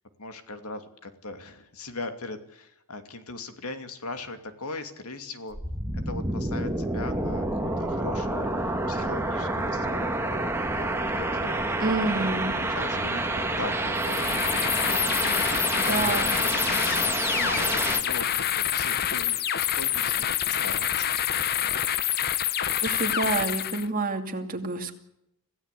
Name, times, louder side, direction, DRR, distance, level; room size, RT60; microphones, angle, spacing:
voice 1, 0.2-5.6 6.1-8.5 8.9-10.3 10.7-11.7 12.6-15.4 15.8-18.3 18.5-20.1 20.4-21.1, left 3 dB, 85° left, 8 dB, 2.6 m, -39 dB
sound 1, 5.5-18.0, right 2 dB, 10° right, 2.0 m, -28 dB
voice 2, 11.8-12.6 15.7-16.3 22.8-24.9, right 3 dB, 40° right, 5 dB, 2.5 m, -28 dB
sound 2, 14.0-23.9, left 10 dB, 45° left, 0.8 m, -27 dB
26.0 x 16.0 x 8.4 m, 0.83 s
head